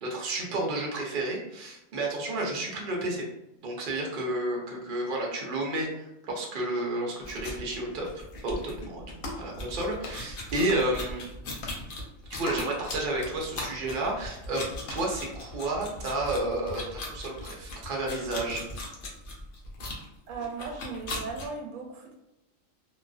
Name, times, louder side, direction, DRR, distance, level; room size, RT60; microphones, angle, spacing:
voice 1, 0.0-3.2 3.6-8.1 8.4-9.0 9.3-11.2 12.3-14.6 14.9-18.6, right 2 dB, 50° right, -1 dB, 0.7 m, -31 dB
sound 1, 7.2-21.5, left 2 dB, 55° left, 0.6 m, -39 dB
sound 2, 9.2-9.5 10.0-10.2 10.7-10.9 11.6-11.8 12.4-12.8 13.6-13.8 14.8-15.1, left 2 dB, 80° left, 1.0 m, -39 dB
voice 2, 20.3-22.1, right 4 dB, 90° right, 2 dB, 1.0 m, -37 dB
2.4 x 2.3 x 2.3 m, 0.88 s
omnidirectional pair, 1.4 m